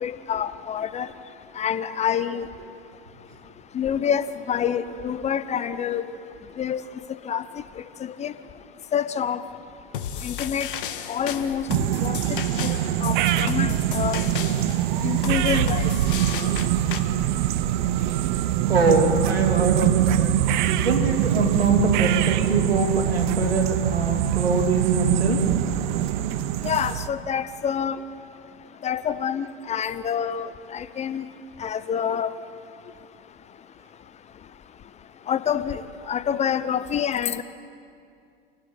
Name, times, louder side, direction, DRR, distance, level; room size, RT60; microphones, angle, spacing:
voice 1, 0.0-1.1 1.6-2.4 3.7-6.0 6.6-6.8 7.3-7.4 8.2-8.3 8.9-9.4 10.2-10.7 11.1-11.6 12.0-12.2 12.6-12.7 13.0-14.2 15.0-15.8 26.6-28.0 28.8-31.2 31.6-32.3 35.3-35.8 36.1-37.4, left 8 dB, 20° left, 14 dB, 0.8 m, -26 dB
sound 1, 9.9-17.0, left 8 dB, 60° left, 1.7 m, -33 dB
sound 2, 11.7-27.1, right 12 dB, 50° right, 1.0 m, -24 dB
voice 2, 18.7-20.4 20.6-25.4, right 4 dB, 80° right, 2 dB, 3.2 m, -23 dB
26.5 x 17.5 x 9.3 m, 2.4 s
figure-of-eight pair, 85°, 30 cm